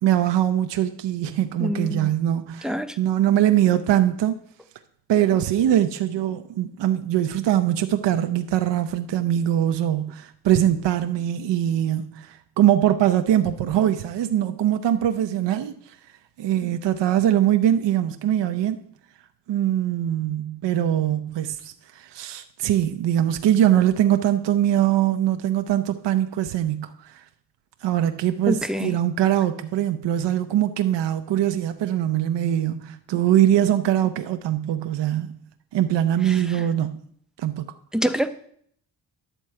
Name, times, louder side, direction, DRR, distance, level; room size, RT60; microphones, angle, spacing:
voice 1, 0.0-4.4 5.1-16.0 16.4-18.8 19.5-27.2 27.8-35.4 35.7-37.1 37.4-37.7, right 11 dB, 75° right, 0.7 m, -22 dB
voice 2, 1.6-2.1 2.6-3.0 28.5-28.9 36.3-36.4 37.9-38.3, equal, ahead, 0.6 m, -25 dB
11.0 x 4.5 x 7.5 m
cardioid pair, 95°, 42 cm